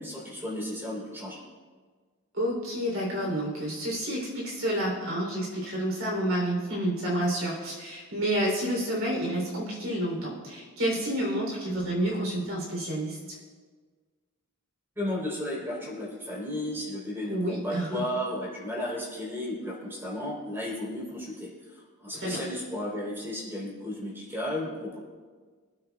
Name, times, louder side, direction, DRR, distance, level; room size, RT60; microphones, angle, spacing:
voice 1, 0.0-1.4 15.0-21.7 22.0-25.0, left 1 dB, 10° right, -6 dB, 3.9 m, -34 dB
voice 2, 2.3-13.4 17.3-18.0 22.1-22.4, right 1 dB, 60° right, -2 dB, 3.4 m, -29 dB
25.5 x 9.1 x 2.4 m, 1.5 s
head